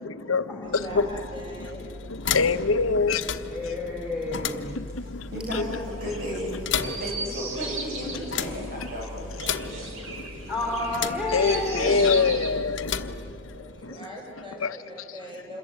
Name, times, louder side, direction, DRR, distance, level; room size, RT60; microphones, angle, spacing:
voice 1, 0.0-1.0 2.1-3.3 4.6-5.3 5.5-5.6 8.1-8.2 8.8-8.9 10.1-10.3 11.3-13.0 13.5-14.0 14.6-14.8, left 4 dB, 85° left, 1.0 m, -25 dB
sound 1, 0.6-13.9, left 6 dB, 60° left, 1.1 m, -35 dB
voice 2, 0.6-1.9 10.0-10.7 13.3-15.6, equal, 25° right, 6.8 m, -41 dB
voice 3, 3.5-4.8 10.5-12.1, left 2 dB, 5° right, 3.8 m, -30 dB
voice 4, 5.3-10.3 10.6-10.8 11.5-12.2, equal, 45° right, 7.7 m, -34 dB
Chirp tweet, 5.3-12.6, right 3 dB, 85° right, 4.1 m, -38 dB
27.5 x 22.0 x 9.0 m
head